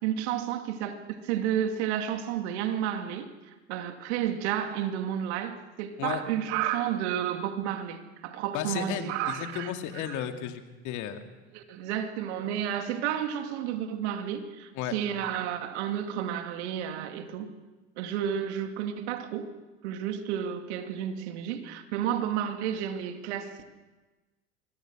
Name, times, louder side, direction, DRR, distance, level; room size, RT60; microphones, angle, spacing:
voice 1, 0.0-10.2 11.5-17.5 18.0-19.5 19.8-23.6, right 10 dB, 70° right, 7 dB, 2.5 m, -31 dB
voice 2, 8.5-11.2 14.8-14.9, left 10 dB, 55° left, 6 dB, 2.5 m, -34 dB
25.5 x 23.0 x 6.3 m, 1.2 s
hypercardioid pair, 80°, 35 cm